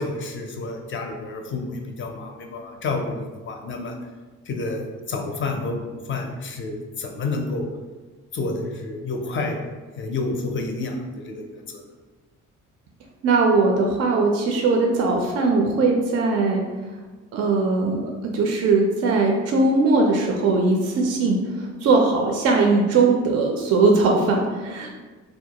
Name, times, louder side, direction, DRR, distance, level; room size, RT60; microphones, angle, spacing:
voice 1, 0.0-3.9 4.5-7.7 8.3-9.6 10.0-11.8, left 3 dB, 40° left, 2 dB, 0.4 m, -29 dB
voice 2, 13.2-16.6 17.3-24.9, right 3 dB, 55° right, 1 dB, 0.4 m, -20 dB
2.3 x 2.1 x 2.8 m, 1.3 s
cardioid pair, 90°, 30 cm